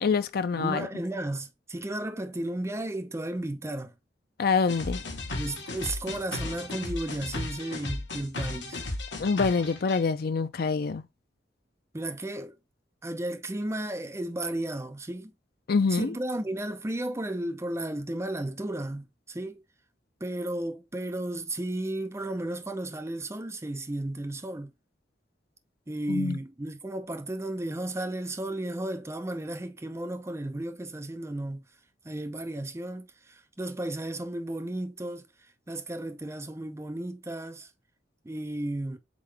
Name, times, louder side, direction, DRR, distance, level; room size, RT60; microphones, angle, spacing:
voice 1, 0.0-0.9 4.4-5.0 9.2-11.0 15.7-16.1 26.1-26.4, left 4 dB, 55° left, 0.5 m, -25 dB
voice 2, 0.6-3.9 5.4-8.8 11.9-12.6 13.0-15.3 15.9-19.6 20.2-24.7 25.9-31.7 32.0-35.3 35.7-37.7 38.2-39.0, right 1 dB, 15° right, 0.6 m, -34 dB
sound 1, 4.7-10.0, left 2 dB, 75° left, 1.2 m, -35 dB
3.8 x 3.8 x 3.3 m
head